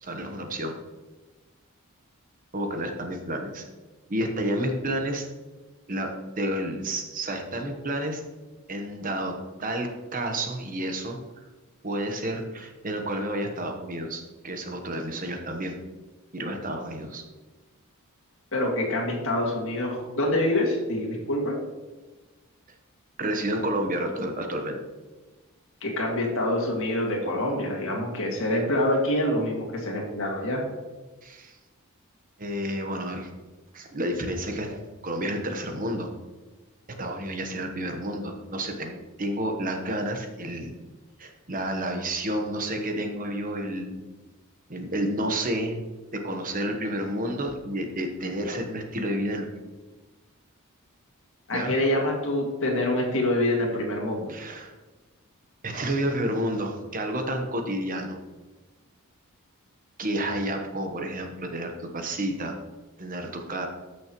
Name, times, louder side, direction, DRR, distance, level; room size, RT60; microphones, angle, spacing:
voice 1, 0.0-0.8 2.5-3.7 4.1-5.3 5.9-8.2 8.7-11.2 11.8-15.8 16.3-17.2 23.2-24.8 31.2-31.6 32.4-33.3 33.7-36.1 37.0-40.7 41.2-44.0 44.7-45.8 46.1-49.5 51.5-51.8 54.3-54.7 55.6-58.2 60.0-62.6 63.0-63.7, right 1 dB, 40° right, 4 dB, 1.0 m, -30 dB
voice 2, 18.5-21.6 25.8-30.6 51.5-54.3, left 1 dB, 60° left, -1 dB, 2.2 m, -26 dB
14.5 x 6.3 x 3.0 m, 1.2 s
head